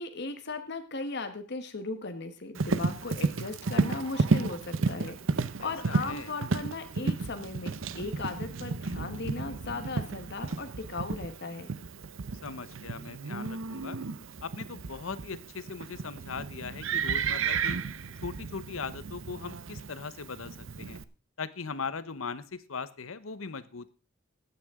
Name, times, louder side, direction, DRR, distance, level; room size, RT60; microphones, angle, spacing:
voice 1, 0.0-11.8, left 3 dB, 55° left, 8 dB, 1.3 m, -37 dB
Livestock farm animals working animals, 2.6-21.0, right 4 dB, 70° right, 0.7 m, -33 dB
voice 2, 5.6-6.3 12.4-14.0 14.4-17.8 18.2-21.0 21.4-23.9, left 5 dB, 80° left, 15 dB, 0.9 m, -39 dB
15.5 x 9.4 x 3.7 m, 0.35 s
head